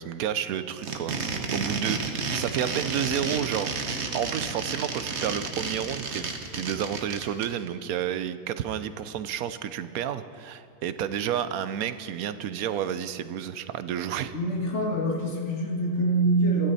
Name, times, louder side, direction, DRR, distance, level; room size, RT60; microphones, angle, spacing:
voice 1, 0.0-14.4, right 9 dB, 80° right, 12 dB, 1.1 m, -31 dB
sound 1, 0.7-7.4, right 4 dB, 50° right, 1.3 m, -31 dB
voice 2, 14.3-16.7, right 2 dB, 55° left, -2 dB, 2.5 m, -25 dB
22.0 x 13.5 x 4.1 m, 2.5 s
omnidirectional pair, 1.5 m